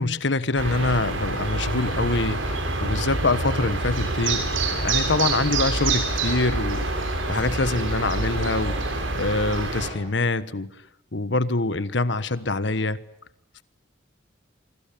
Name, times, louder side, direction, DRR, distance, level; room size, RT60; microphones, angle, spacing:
voice 1, 0.0-10.7 11.1-13.0, left 3 dB, 65° left, 14 dB, 1.3 m, -25 dB
sound 1, 0.6-9.9, right 3 dB, 85° right, 6.9 m, -26 dB
25.5 x 25.5 x 8.6 m, 0.71 s
head